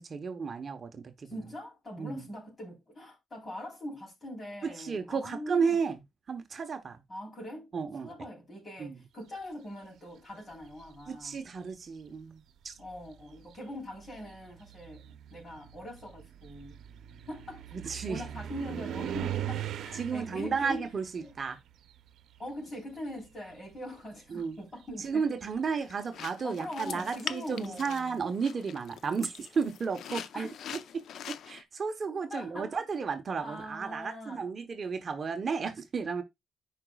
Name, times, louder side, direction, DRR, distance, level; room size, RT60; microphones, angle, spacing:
voice 1, 0.0-1.3 2.0-2.2 4.6-6.0 6.3-7.0 7.7-8.1 8.8-9.0 11.1-12.7 17.7-18.2 19.9-21.6 24.3-24.6 25.0-36.2, right 5 dB, 40° right, 1.0 m, -33 dB
voice 2, 1.2-5.8 7.1-7.7 8.0-11.5 12.8-16.8 17.3-17.6 18.1-20.9 21.2-21.3 22.4-25.2 25.7-25.8 26.4-28.2 30.3-30.5 32.0-32.8 33.4-34.4, equal, 25° left, 3.7 m, -42 dB
sound 1, 10.5-11.1 12.1-12.2 12.7-22.6 22.9-25.5, right 10 dB, 90° right, 0.7 m, -41 dB
sound 2, 25.8-31.6, left 9 dB, 75° left, 0.6 m, -43 dB
14.5 x 5.1 x 2.3 m
cardioid pair, 145°, 0 cm